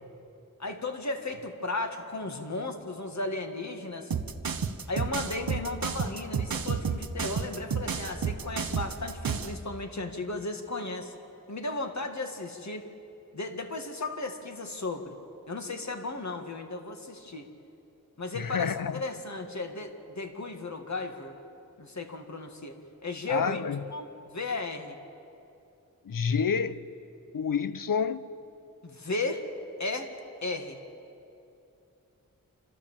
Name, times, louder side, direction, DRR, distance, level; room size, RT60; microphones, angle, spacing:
voice 1, 0.6-4.1 4.9-11.1 11.5-12.9 13.3-15.2 15.5-17.5 18.2-21.4 21.8-23.6 23.9-25.0 28.8-29.5 29.8-30.1 30.4-30.8, left 2 dB, 55° left, 1.9 m, -35 dB
sound 1, 4.1-9.6, right 6 dB, 80° right, 0.9 m, -31 dB
voice 2, 18.3-19.0 23.3-23.8 26.0-26.9 27.3-28.2, left 6 dB, 70° left, 0.8 m, -28 dB
28.0 x 13.5 x 7.3 m
wide cardioid pair, 55°, 34 cm